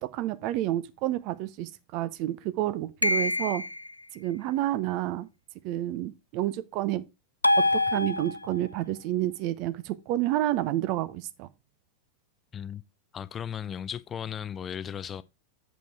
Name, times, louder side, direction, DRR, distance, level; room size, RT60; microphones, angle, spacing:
voice 1, 0.0-3.6 4.1-5.3 5.6-7.0 7.5-11.5, right 14 dB, 45° right, 0.7 m, -29 dB
sound 1, 3.0-3.9 7.4-8.7, left 2 dB, 85° left, 0.3 m, -25 dB
voice 2, 13.1-15.2, left 8 dB, 25° left, 0.5 m, -36 dB
7.8 x 5.2 x 4.6 m
figure-of-eight pair, 90°, 0 cm